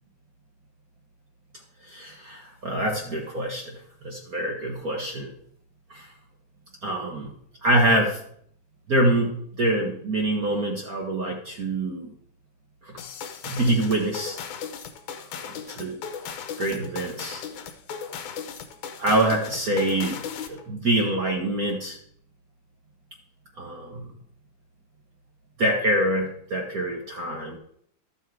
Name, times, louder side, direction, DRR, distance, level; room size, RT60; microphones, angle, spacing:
voice 1, 1.9-3.7 4.0-5.3 5.9-6.1 6.8-7.3 7.6-8.2 8.9-9.3 9.6-12.1 12.8-12.9 13.4-14.4 15.3-16.0 16.6-17.4 19.0-20.2 20.5-22.0 23.6-24.1 25.6-27.6, right 1 dB, 60° right, 0 dB, 0.9 m, -25 dB
sound 1, 13.0-20.6, left 7 dB, 80° left, 2.3 m, -37 dB
12.5 x 6.4 x 4.7 m, 0.65 s
omnidirectional pair, 3.4 m